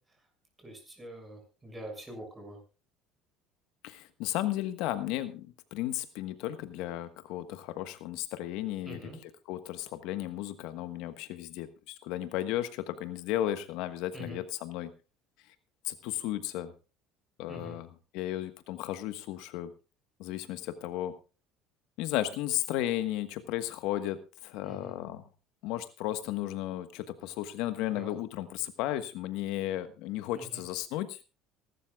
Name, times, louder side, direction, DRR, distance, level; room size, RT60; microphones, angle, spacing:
voice 1, 0.6-2.6 8.9-9.2 14.1-14.4 17.5-17.8 24.6-24.9 27.9-28.1 30.3-30.6, right 1 dB, 15° right, 3 dB, 6.7 m, -44 dB
voice 2, 3.8-14.9 15.8-16.7 17.4-17.9 18.1-19.7 20.2-21.1 22.0-25.2 25.6-31.2, left 13 dB, 75° left, 11 dB, 1.3 m, -34 dB
24.5 x 12.5 x 2.4 m, 0.32 s
cardioid pair, 120°, 0 cm